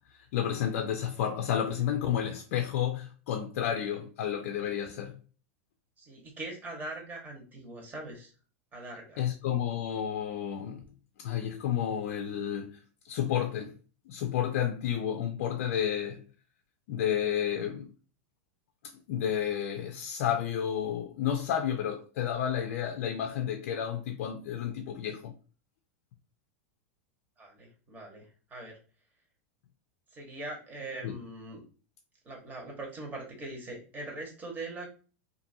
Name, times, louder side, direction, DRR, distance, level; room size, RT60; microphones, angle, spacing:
voice 1, 0.3-5.1 9.2-10.8 11.2-12.8 13.1-13.8 14.1-16.2 16.9-17.9 19.1-25.3 31.0-31.2, left 9 dB, 65° left, 0.4 m, -31 dB
voice 2, 6.0-8.3 8.7-9.2 27.4-28.8 30.1-31.6 32.2-34.9, right 2 dB, 25° right, 1.2 m, -41 dB
2.6 x 2.6 x 2.6 m
hypercardioid pair, 120°, 8 cm